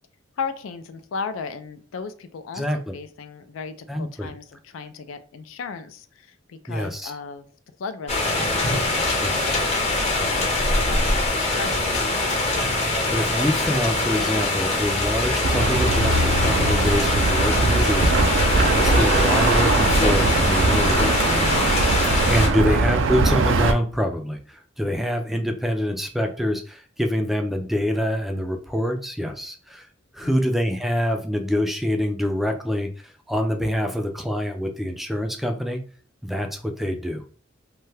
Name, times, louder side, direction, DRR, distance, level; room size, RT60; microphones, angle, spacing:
voice 1, 0.4-7.5 7.8-9.9 10.2-11.3 11.5-12.4 22.5-22.8 30.2-30.5, left 5 dB, 90° left, 10 dB, 0.4 m, -36 dB
voice 2, 2.5-2.9 3.9-4.3 6.7-7.1 9.2-9.6 13.1-29.9 30.1-35.8 36.2-37.2, equal, ahead, 4 dB, 0.3 m, -26 dB
sound 1, 8.1-22.5, left 2 dB, 35° left, 0.6 m, -23 dB
sound 2, 15.4-23.7, right 3 dB, 70° right, 0.4 m, -21 dB
2.7 x 2.2 x 3.2 m, 0.41 s
head